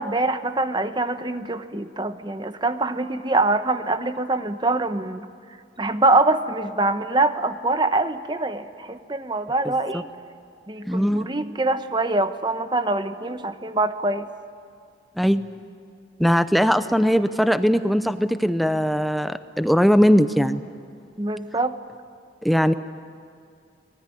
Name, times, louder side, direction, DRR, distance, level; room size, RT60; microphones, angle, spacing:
voice 1, 0.0-5.3 5.8-10.1 10.7-14.2 21.2-21.8, right 2 dB, 25° right, 10 dB, 1.0 m, -24 dB
voice 2, 10.9-11.3 15.2-15.5 16.2-20.6 22.4-22.7, equal, ahead, 11 dB, 0.6 m, -20 dB
24.5 x 20.0 x 9.9 m, 2.4 s
head